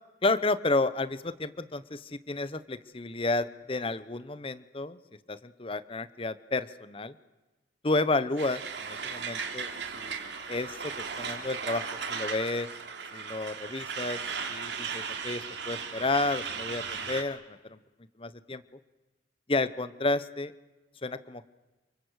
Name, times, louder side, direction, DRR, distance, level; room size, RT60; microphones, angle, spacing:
voice 1, 0.2-5.0 5.3-7.1 7.8-9.7 9.9-11.8 12.1-12.7 13.1-14.2 14.5-17.8 18.2-18.6 19.5-20.5 21.0-21.4, left 2 dB, 30° left, 14 dB, 0.9 m, -31 dB
Truck, 8.4-17.2, right 6 dB, 75° right, 3.1 m, -36 dB
29.0 x 23.0 x 8.2 m, 1.2 s
head